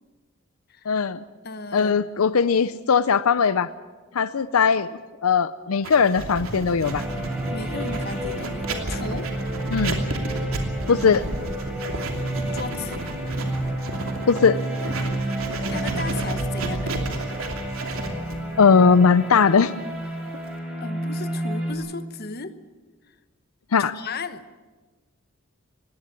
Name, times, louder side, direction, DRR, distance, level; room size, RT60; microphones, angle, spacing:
voice 1, 0.9-1.2 1.7-3.7 4.1-4.9 5.2-7.0 9.7-10.0 10.9-11.2 14.3-14.6 18.6-19.7 23.7-23.9, left 5 dB, 85° left, 15 dB, 0.6 m, -19 dB
voice 2, 1.4-2.0 7.5-9.3 12.5-13.1 15.7-17.0 20.1-20.4 20.8-22.6 23.8-24.4, left 4 dB, 45° left, 11 dB, 1.1 m, -35 dB
Writing, 5.8-20.6, right 2 dB, 75° right, 2.9 m, -33 dB
sound 1, 6.2-13.8, right 1 dB, 30° right, 0.8 m, -37 dB
sound 2, 6.8-21.7, right 1 dB, 5° right, 5.1 m, -30 dB
20.0 x 17.0 x 9.0 m, 1.3 s
head